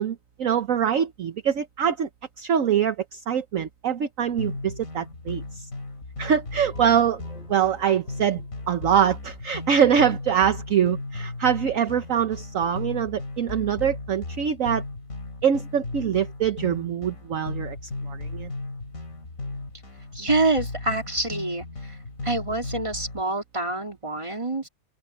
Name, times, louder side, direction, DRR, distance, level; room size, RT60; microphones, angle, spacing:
voice 1, 0.0-2.1 2.4-5.7 6.2-7.2 7.5-8.4 8.7-14.8 15.4-18.5, right 8 dB, 60° right, 1.2 m, -24 dB
sound 1, 4.4-23.2, left 2 dB, 55° left, 3.3 m, -36 dB
sound 2, 6.6-9.4, equal, 5° right, 3.4 m, -52 dB
voice 2, 20.1-22.0 22.2-24.7, right 2 dB, 20° right, 3.2 m, -26 dB
open air
omnidirectional pair, 1.7 m